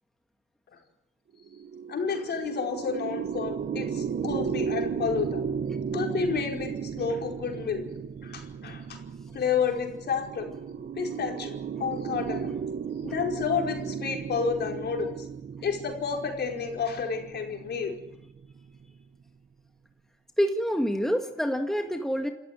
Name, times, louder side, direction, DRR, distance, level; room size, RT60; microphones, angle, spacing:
sound 1, 1.4-18.9, right 7 dB, 50° right, 1.2 m, -35 dB
voice 1, 1.9-5.4 5.9-7.8 8.2-9.0 9.3-10.5 11.0-12.5 13.0-15.1 15.6-17.9, left 6 dB, 55° left, 2 dB, 5.0 m, -30 dB
voice 2, 20.4-22.3, equal, ahead, 5 dB, 1.9 m, -27 dB
28.0 x 13.5 x 9.8 m, 0.91 s
cardioid pair, 90°, 20 cm